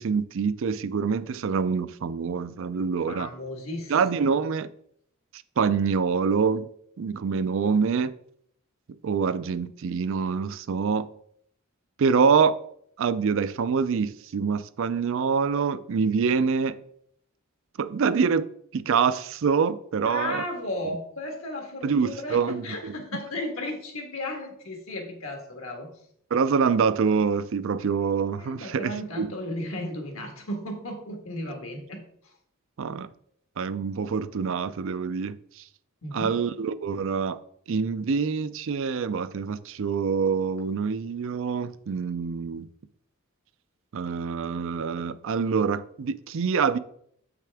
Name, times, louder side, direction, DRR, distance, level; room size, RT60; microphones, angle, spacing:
voice 1, 0.0-3.3 3.9-4.7 5.6-6.7 7.0-8.1 9.0-11.1 12.0-12.6 13.0-16.8 17.8-20.4 21.8-22.9 26.3-29.3 32.8-33.1 33.6-35.6 36.1-37.4 37.7-42.7 43.9-46.8, right 5 dB, 65° right, 0.4 m, -25 dB
voice 2, 3.1-4.0 4.2-4.5 20.0-25.9 28.4-32.0 36.0-36.4, left 1 dB, 70° left, 1.6 m, -35 dB
7.6 x 5.9 x 3.5 m
head